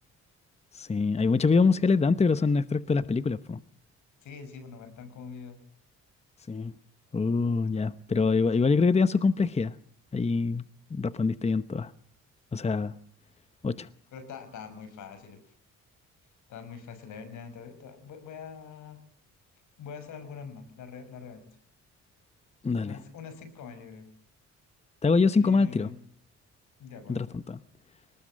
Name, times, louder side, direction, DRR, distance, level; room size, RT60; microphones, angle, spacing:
voice 1, 0.7-3.6 6.5-6.7 7.1-9.7 10.1-10.6 10.9-11.9 12.5-12.9 13.6-13.9 22.6-23.0 25.0-25.9 27.1-27.6, left 4 dB, 20° left, 1.0 m, -25 dB
voice 2, 4.2-5.6 14.1-15.4 16.5-19.0 19.8-21.4 22.8-24.1 25.3-26.0 26.8-27.3, left 6 dB, 80° left, 6.4 m, -44 dB
27.5 x 19.5 x 7.7 m
cardioid pair, 90°, 30 cm